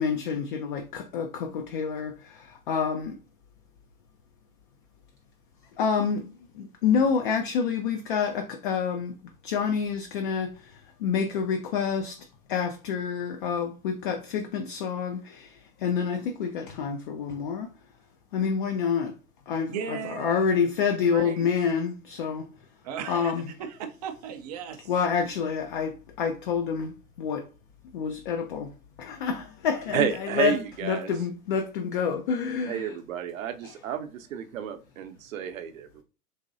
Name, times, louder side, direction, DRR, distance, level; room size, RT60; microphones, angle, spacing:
voice 1, 0.0-3.1 5.8-6.3 6.5-9.2 9.4-17.7 18.3-19.1 19.5-22.5 23.1-23.4 24.9-27.5 27.9-28.7 29.0-30.6 30.8-32.9 33.6-33.7, left 6 dB, 35° left, 0.4 m, -28 dB
voice 2, 19.7-20.5 21.0-21.5 22.8-23.3 23.6-24.9, right 7 dB, 30° right, 0.4 m, -36 dB
voice 3, 29.9-31.1 32.6-36.0, right 9 dB, 60° right, 0.7 m, -31 dB
4.0 x 2.9 x 2.5 m
figure-of-eight pair, 105°, 46 cm